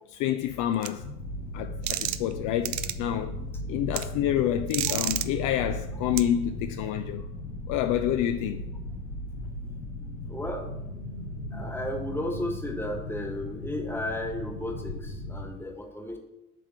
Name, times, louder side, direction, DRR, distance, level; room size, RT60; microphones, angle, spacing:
voice 1, 0.1-1.1 1.5-3.4 3.7-7.2 7.7-8.6, left 11 dB, 55° left, 0.5 m, -28 dB
sound 1, 0.8-0.9 1.9-2.3 2.7-2.9 3.9-4.0 4.7-5.3 6.2-6.3, right 14 dB, 50° right, 0.5 m, -29 dB
sound 2, 0.9-15.5, left 1 dB, 90° left, 0.9 m, -37 dB
voice 2, 10.3-10.7 11.5-16.2, left 1 dB, 5° left, 1.3 m, -34 dB
7.5 x 3.6 x 6.2 m
figure-of-eight pair, 60°, 39 cm